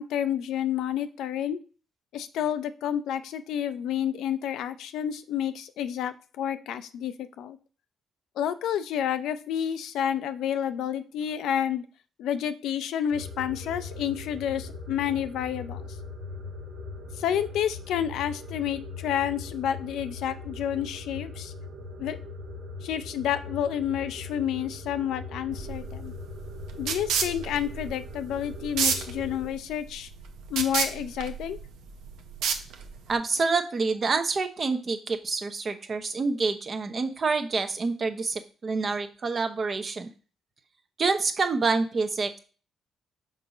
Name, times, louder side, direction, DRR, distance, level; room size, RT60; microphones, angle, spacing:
voice 1, 0.0-1.6 2.1-7.6 8.4-11.9 12.2-15.9 17.2-21.5 22.0-22.2 22.8-26.1 26.8-30.1 30.5-31.6, left 9 dB, 85° left, 11 dB, 0.5 m, -30 dB
sound 1, 13.1-29.5, left 3 dB, 70° right, 1.2 m, -40 dB
sound 2, 25.5-33.2, right 6 dB, 85° right, 0.7 m, -31 dB
voice 2, 33.1-40.1 41.0-42.4, right 4 dB, 40° right, 8 dB, 0.8 m, -27 dB
5.4 x 4.0 x 5.0 m, 0.37 s
cardioid pair, 90°, 0 cm